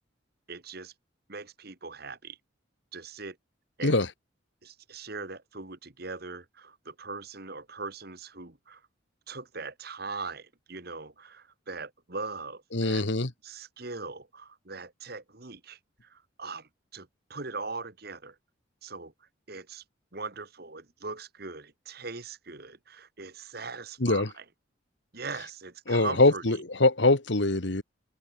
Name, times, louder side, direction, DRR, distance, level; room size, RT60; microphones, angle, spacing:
voice 1, 0.5-0.9 1.3-2.4 2.9-3.4 3.8-4.0 4.6-8.8 9.3-13.0 13.4-15.8 16.1-18.3 18.8-19.1 19.5-19.8 20.1-24.4 25.1-26.4, right 4 dB, 50° right, 2.0 m, -40 dB
voice 2, 12.7-13.3 24.0-24.3 25.9-27.8, left 2 dB, 65° left, 1.7 m, -23 dB
open air
head